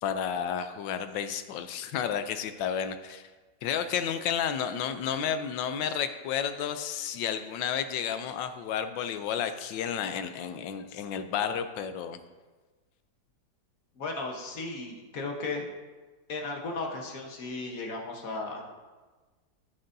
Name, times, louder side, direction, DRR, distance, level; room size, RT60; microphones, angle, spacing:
voice 1, 0.0-3.3 3.6-12.2, left 8 dB, 80° left, 10 dB, 1.3 m, -31 dB
voice 2, 14.0-15.7 16.3-18.7, left 3 dB, 50° left, 1 dB, 1.4 m, -35 dB
12.5 x 7.9 x 2.7 m, 1.3 s
omnidirectional pair, 2.0 m